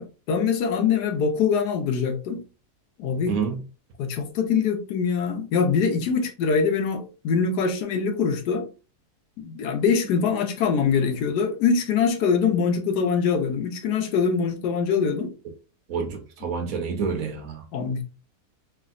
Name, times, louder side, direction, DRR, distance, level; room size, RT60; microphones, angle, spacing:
voice 1, 0.0-2.4 3.0-3.3 4.0-8.7 9.4-15.3 17.7-18.0, left 6 dB, 85° left, 1.2 m, -23 dB
voice 2, 3.3-3.6 15.9-17.6, right 5 dB, 65° right, 1.1 m, -28 dB
3.2 x 2.6 x 2.5 m
omnidirectional pair, 1.7 m